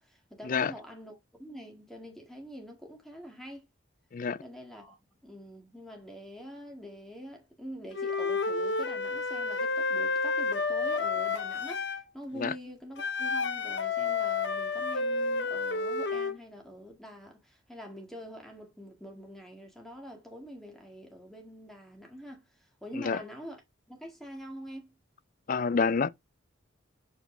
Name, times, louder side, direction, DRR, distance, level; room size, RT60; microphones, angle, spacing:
voice 1, 0.0-3.7 4.4-5.0 5.2-23.6 23.9-24.9, equal, ahead, 1.8 m, -45 dB
Wind instrument woodwind instrument, 7.9-12.0 13.0-16.3, left 4 dB, 60° left, 0.8 m, -30 dB
voice 2, 25.5-26.1, left 5 dB, 45° left, 0.4 m, -27 dB
7.1 x 4.2 x 3.7 m
head